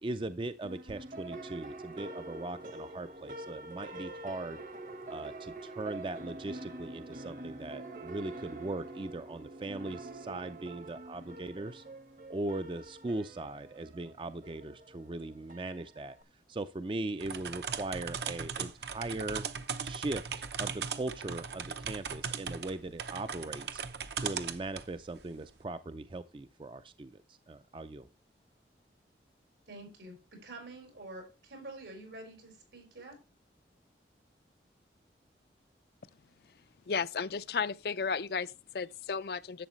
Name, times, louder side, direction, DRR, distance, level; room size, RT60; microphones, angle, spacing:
voice 1, 0.0-4.6 5.1-11.8 12.3-16.2 16.5-19.5 19.8-20.3 20.6-23.8 24.2-28.1, right 2 dB, 30° right, 0.4 m, -39 dB
sound 1, 0.6-16.2, right 2 dB, 45° right, 1.0 m, -45 dB
sound 2, 17.2-24.9, right 6 dB, 70° right, 0.8 m, -38 dB
voice 2, 29.7-33.2, right 2 dB, 90° right, 4.7 m, -47 dB
voice 3, 36.9-39.7, left 5 dB, 60° left, 0.4 m, -34 dB
11.0 x 8.0 x 3.1 m
head